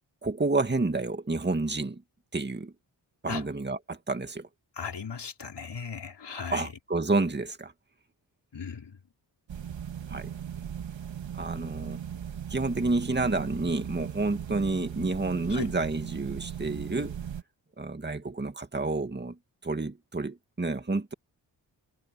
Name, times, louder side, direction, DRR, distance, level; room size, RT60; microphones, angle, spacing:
voice 1, 0.2-2.0 2.3-2.7 3.2-4.5 6.5-7.7 10.1-10.3 11.3-12.0 12.5-17.2 17.8-21.1, right 3 dB, 25° right, 2.2 m, -29 dB
voice 2, 4.8-6.7 8.5-9.0 15.5-15.7, left 6 dB, 65° left, 5.1 m, -37 dB
sound 1, 9.5-17.4, right 9 dB, 85° right, 2.9 m, -38 dB
cardioid pair, 70°, 44 cm